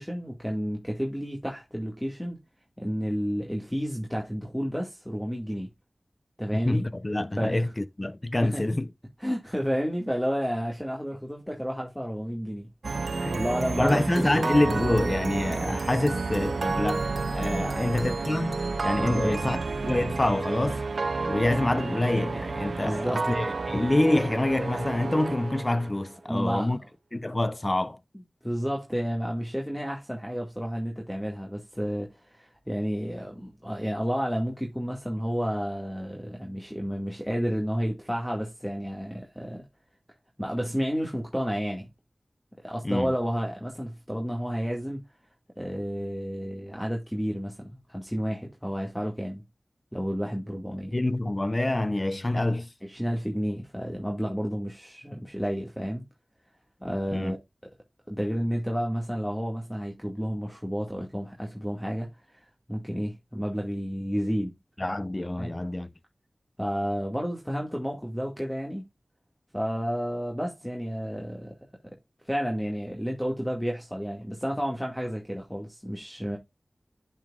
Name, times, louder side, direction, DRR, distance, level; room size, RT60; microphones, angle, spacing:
voice 1, 0.0-2.4 2.8-5.7 6.4-6.9 7.4-7.7 8.4-8.6 9.2-12.7 13.0-14.3 17.6-17.9 19.0-19.4 22.8-23.3 26.3-26.9 28.4-39.6 40.4-41.9 42.6-45.0 45.6-49.4 49.9-50.9 52.8-56.0 56.8-57.4 58.1-62.4 62.7-64.5 65.4-65.5 66.6-68.9 69.5-71.5 72.2-76.4, equal, 5° left, 1.9 m, -31 dB
voice 2, 6.6-8.9 13.2-13.4 13.8-20.8 21.2-26.8 27.1-28.0 42.8-43.1 50.9-52.7 57.1-57.3 64.8-65.9, left 1 dB, 35° left, 0.6 m, -26 dB
sound 1, 12.8-26.1, right 3 dB, 85° right, 0.6 m, -30 dB
10.5 x 5.6 x 2.4 m
wide cardioid pair, 40°, 0 cm